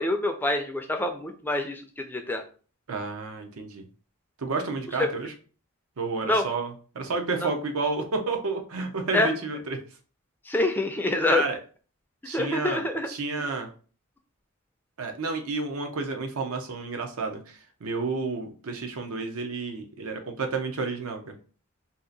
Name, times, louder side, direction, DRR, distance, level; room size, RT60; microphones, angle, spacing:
voice 1, 0.0-2.4 5.0-5.1 6.2-6.5 7.4-7.5 9.1-9.3 10.5-11.4 12.3-13.1 13.4-13.5, left 2 dB, 10° left, 5 dB, 0.3 m, -26 dB
voice 2, 2.9-3.9 4.4-5.3 6.0-9.8 11.3-11.6 12.2-13.7 15.0-21.3, right 3 dB, 85° right, 4 dB, 0.7 m, -31 dB
2.7 x 2.5 x 3.8 m, 0.39 s
head